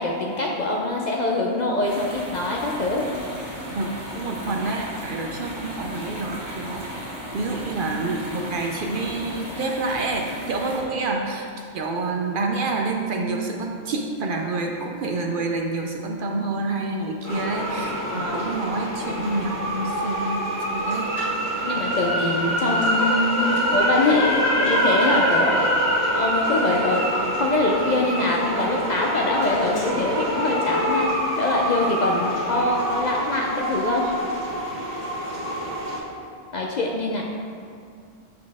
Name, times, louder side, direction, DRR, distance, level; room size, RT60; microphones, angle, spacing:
voice 1, 0.0-3.1 18.1-18.5 21.6-25.6 26.1-27.0 27.4-31.1 31.4-34.1 36.5-37.2, left 2 dB, 55° left, -1 dB, 0.5 m, -24 dB
sound 1, 1.8-10.8, equal, 80° right, 1.9 m, -35 dB
voice 2, 3.7-6.9 7.3-20.4 20.7-21.1, right 3 dB, 60° right, 1 dB, 0.6 m, -28 dB
sound 2, 17.2-36.0, equal, 35° left, 1.6 m, -25 dB
7.2 x 4.7 x 3.4 m, 2.3 s
omnidirectional pair, 1.2 m